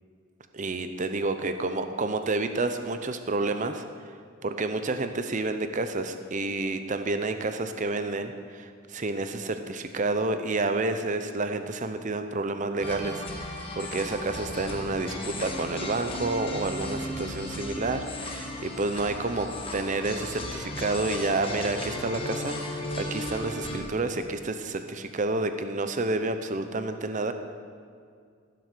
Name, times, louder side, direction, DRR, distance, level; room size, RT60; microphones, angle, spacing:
voice 1, 0.5-4.2 4.4-27.3, right 2 dB, 40° right, 8 dB, 0.6 m, -30 dB
sound 1, 12.8-23.8, left 1 dB, 25° left, 1.5 m, -35 dB
15.0 x 7.7 x 6.7 m, 2.2 s
head